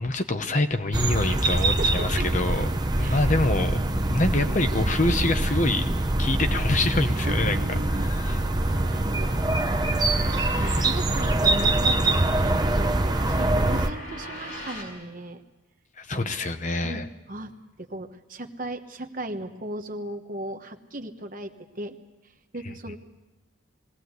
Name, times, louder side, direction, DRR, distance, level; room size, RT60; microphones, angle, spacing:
voice 1, 0.0-2.7 3.0-5.8 6.2-7.6 7.9-8.4 16.0-17.1, left 2 dB, 35° left, 8 dB, 0.9 m, -26 dB
sound 1, 0.9-13.9, right 2 dB, 20° right, 0.7 m, -24 dB
voice 2, 1.5-2.3 3.0-3.2 4.4-4.7 7.2-8.3 8.9-9.5 10.2-15.4 16.1-16.3 16.8-17.5 17.8-22.0 22.5-23.0, right 1 dB, 40° right, 6 dB, 1.2 m, -37 dB
sound 2, 7.2-14.9, left 1 dB, 55° left, 6.9 m, -41 dB
21.0 x 17.5 x 8.1 m, 1.1 s
head